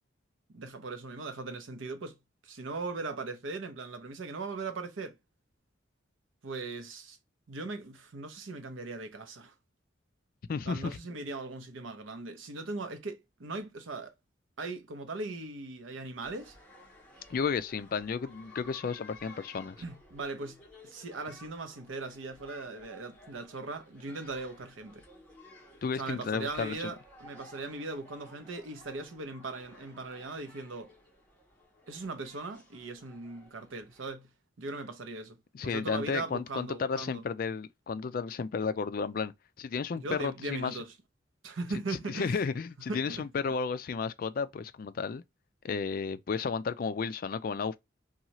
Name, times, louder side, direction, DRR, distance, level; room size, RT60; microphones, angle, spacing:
voice 1, 0.5-2.2 2.4-5.2 6.4-7.2 7.5-9.5 10.7-14.1 14.6-16.5 19.8-25.0 25.9-30.9 31.9-34.3 34.6-35.4 35.6-37.2 39.9-40.9 41.4-42.4 42.9-43.3, right 3 dB, 90° right, 0.7 m, -39 dB
voice 2, 10.5-11.0 17.3-19.8 25.8-26.9 35.5-39.3 39.6-40.8 42.1-45.2 45.6-47.8, left 5 dB, 50° left, 0.3 m, -33 dB
sound 1, 16.2-34.1, left 1 dB, 5° left, 1.1 m, -55 dB
2.7 x 2.3 x 2.9 m
head